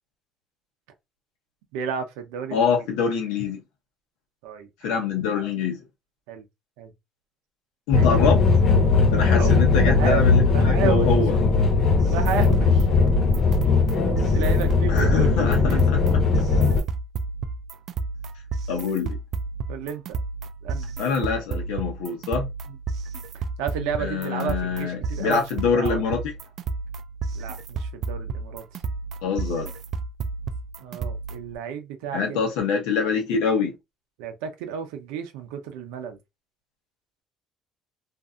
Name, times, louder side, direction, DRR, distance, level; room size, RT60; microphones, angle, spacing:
voice 1, 1.7-2.7 4.4-5.0 6.3-6.4 6.8-6.9 7.9-8.1 9.3-11.2 12.0-12.9 14.3-16.0 19.7-20.2 20.6-20.9 22.7-22.8 23.3-26.0 27.3-28.6 30.8-32.4 34.2-36.2, right 7 dB, 90° right, 0.7 m, -32 dB
voice 2, 2.5-3.6 4.8-5.8 7.9-8.4 9.1-11.4 14.9-16.5 18.7-19.1 21.0-22.5 24.0-26.2 29.2-29.7 32.1-33.7, left 5 dB, 90° left, 0.9 m, -25 dB
sound 1, 7.9-16.8, left 4 dB, 65° left, 1.0 m, -19 dB
sound 2, 12.0-31.6, right 4 dB, 60° right, 0.3 m, -32 dB
2.6 x 2.6 x 2.4 m
supercardioid pair, 85°, 0 cm